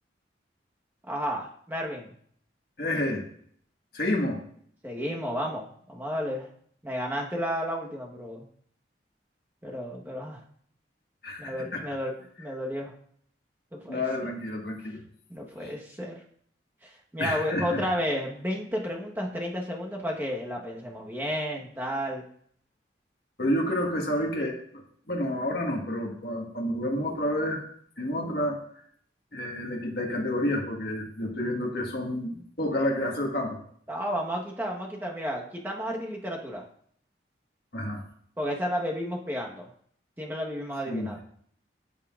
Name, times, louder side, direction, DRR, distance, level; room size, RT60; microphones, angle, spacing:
voice 1, 1.1-2.1 4.8-6.5 6.8-8.5 9.6-10.4 11.4-12.1 12.4-12.9 13.7-14.0 15.3-16.2 16.8-22.3 33.9-36.6 38.4-39.7 40.2-41.2, equal, 10° right, -1 dB, 1.2 m, -32 dB
voice 2, 2.8-3.2 3.9-4.4 11.2-11.8 13.9-15.0 15.6-15.7 17.2-17.8 23.4-27.6 28.0-28.6 29.3-33.6 37.7-38.0 40.9-41.1, left 1 dB, 55° left, 0 dB, 1.5 m, -29 dB
14.0 x 5.6 x 2.4 m, 0.62 s
head